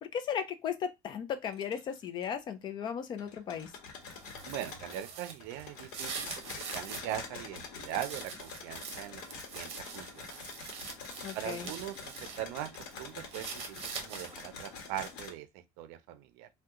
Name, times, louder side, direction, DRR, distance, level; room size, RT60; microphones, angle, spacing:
voice 1, 0.0-3.7 11.2-11.7, left 8 dB, 35° left, 0.4 m, -36 dB
sound 1, 1.5-2.2 2.6-2.7 3.2-5.0 5.4-15.3, left 5 dB, 75° left, 1.0 m, -46 dB
sound 2, 4.0-7.2 7.6-12.4 12.7-14.5, right 6 dB, 45° right, 0.8 m, -44 dB
voice 2, 4.4-6.4 6.7-9.2 9.5-10.5 11.3-16.5, right 12 dB, 85° right, 0.5 m, -41 dB
2.7 x 2.2 x 3.6 m
cardioid pair, 160°, 14 cm